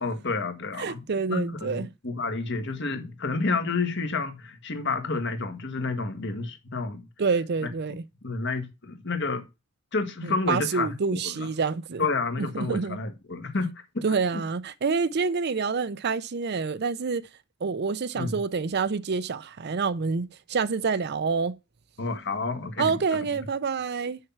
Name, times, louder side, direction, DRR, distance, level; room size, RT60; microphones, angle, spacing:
voice 1, 0.0-1.0 1.3-7.1 8.2-9.4 9.9-11.5 12.0-14.0 14.3-14.4 18.1-18.4 22.0-22.9, left 3 dB, 55° left, 1.6 m, -30 dB
voice 2, 0.8-1.9 7.2-8.0 10.2-12.1 12.4-13.0 14.0-17.3 17.6-21.6 22.8-24.2, right 5 dB, 50° right, 0.5 m, -27 dB
6.5 x 5.7 x 7.2 m
head